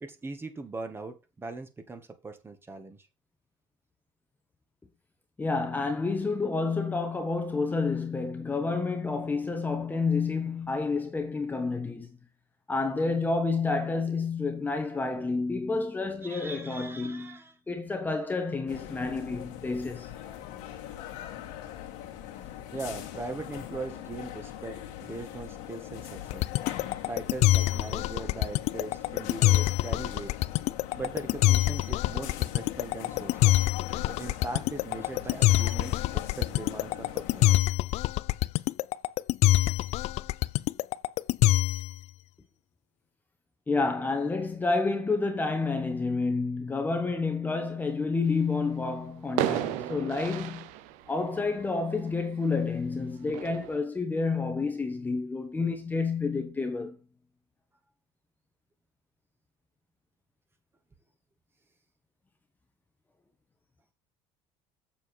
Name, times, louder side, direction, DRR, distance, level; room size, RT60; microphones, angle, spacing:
voice 1, 0.0-3.0 16.2-17.5 22.7-26.5 27.1-30.3 31.0-33.6 34.0-37.7, right 3 dB, 20° right, 1.7 m, -40 dB
voice 2, 5.4-12.1 12.7-17.4 17.7-20.1 43.7-50.7 51.1-57.0, left 4 dB, 15° left, 1.2 m, -29 dB
sound 1, 18.7-37.6, left 11 dB, 80° left, 2.1 m, -41 dB
sound 2, 26.3-41.9, left 17 dB, 60° left, 0.4 m, -24 dB
sound 3, 48.6-48.8 49.4-52.6 53.3-53.8, right 13 dB, 75° right, 0.9 m, -33 dB
7.8 x 7.1 x 4.4 m
cardioid pair, 130°, 13 cm